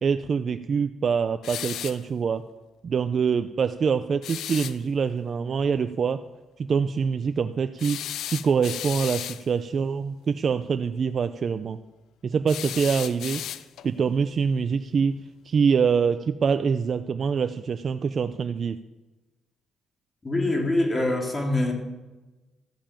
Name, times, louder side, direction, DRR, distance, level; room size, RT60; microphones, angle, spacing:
voice 1, 0.0-2.4 2.8-6.2 6.6-8.0 8.3-11.8 12.2-13.4 13.8-15.1 15.5-18.8, right 6 dB, 50° right, 10 dB, 0.5 m, -25 dB
sound 1, 1.4-2.0 4.2-4.8 7.8-9.4 12.5-13.9, left 11 dB, 75° left, 0.5 m, -34 dB
voice 2, 20.2-21.7, left 2 dB, 25° left, 1 dB, 3.4 m, -24 dB
13.5 x 7.2 x 8.9 m, 1.1 s
cardioid pair, 90°, 0 cm